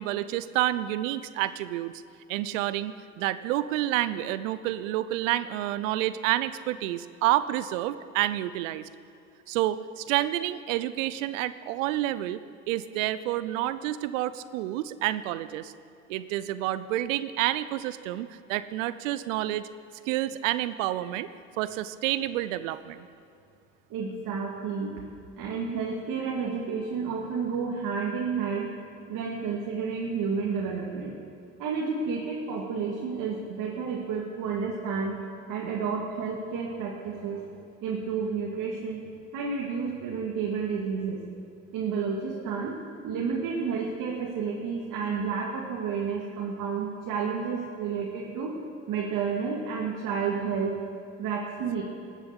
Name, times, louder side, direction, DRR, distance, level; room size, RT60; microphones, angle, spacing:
voice 1, 0.0-1.9 2.3-8.8 9.5-12.4 12.7-15.7 16.1-19.7 20.1-21.3 21.6-23.1, right 14 dB, 70° right, 15 dB, 0.7 m, -29 dB
voice 2, 23.9-24.9 25.4-28.7 29.1-31.2 31.6-35.2 35.5-37.5 37.8-39.0 39.3-41.2 41.7-42.8 43.0-48.5 48.9-50.8 51.2-51.8, right 5 dB, 55° right, -2 dB, 2.2 m, -31 dB
19.5 x 7.3 x 8.2 m, 2.6 s
hypercardioid pair, 65°, 40 cm